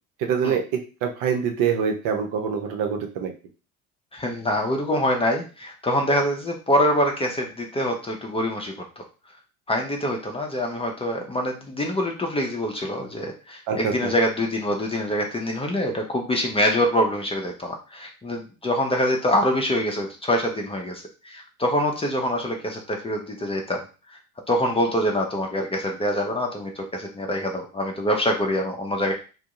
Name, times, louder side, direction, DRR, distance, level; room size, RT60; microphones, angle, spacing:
voice 1, 0.2-3.3 13.7-14.1, right 7 dB, 50° right, 4 dB, 0.7 m, -25 dB
voice 2, 4.1-8.7 9.7-23.8 24.5-29.1, equal, 15° left, 1 dB, 0.6 m, -25 dB
2.6 x 2.0 x 3.7 m, 0.33 s
figure-of-eight pair, 60°, 44 cm